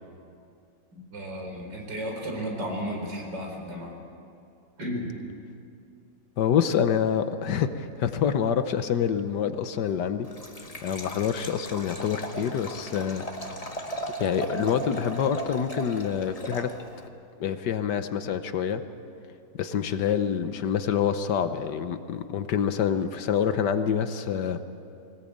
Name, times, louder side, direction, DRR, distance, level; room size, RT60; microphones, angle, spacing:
voice 1, 0.9-3.9 4.8-5.1, equal, 70° right, 1 dB, 4.7 m, -33 dB
voice 2, 6.4-10.3 10.8-13.3 14.2-16.7 17.4-18.8 19.5-24.6, left 8 dB, 70° left, 10 dB, 1.4 m, -26 dB
Liquid, 10.2-17.1, right 1 dB, 20° left, 1.6 m, -37 dB
21.0 x 19.0 x 8.7 m, 2.5 s
omnidirectional pair, 2.0 m